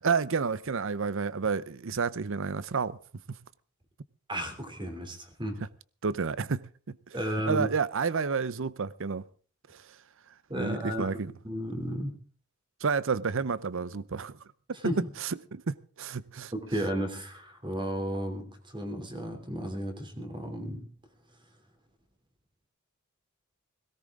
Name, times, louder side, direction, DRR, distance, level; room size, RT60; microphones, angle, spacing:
voice 1, 0.0-3.0 6.0-6.6 6.9-7.2 7.5-9.2 9.7-9.8 10.5-11.3 12.8-14.4 15.2-16.5, right 5 dB, 65° right, 0.7 m, -30 dB
voice 2, 4.3-5.6 7.1-7.7 10.5-11.1 11.4-12.2 14.8-15.1 16.5-20.9, right 1 dB, 25° right, 3.1 m, -33 dB
17.5 x 17.0 x 3.7 m
head